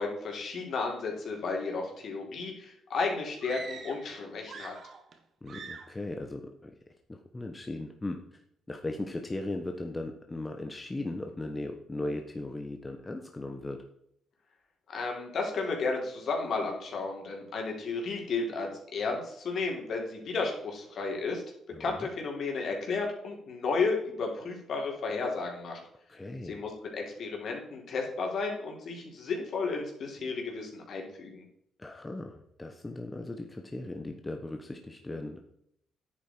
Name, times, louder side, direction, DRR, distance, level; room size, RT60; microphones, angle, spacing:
voice 1, 0.0-4.7 14.9-21.4 21.8-25.8 26.4-31.5, left 4 dB, 60° left, 1 dB, 3.6 m, -33 dB
sound 1, 3.4-4.1 4.4-5.2 5.5-6.0, right 4 dB, 55° right, 1.6 m, -44 dB
voice 2, 5.4-6.7 7.1-8.4 8.7-13.8 21.7-22.1 26.1-26.6 31.8-35.5, left 2 dB, 20° left, 4 dB, 1.2 m, -38 dB
10.0 x 8.4 x 4.6 m, 0.72 s
cardioid pair, 90°, 0 cm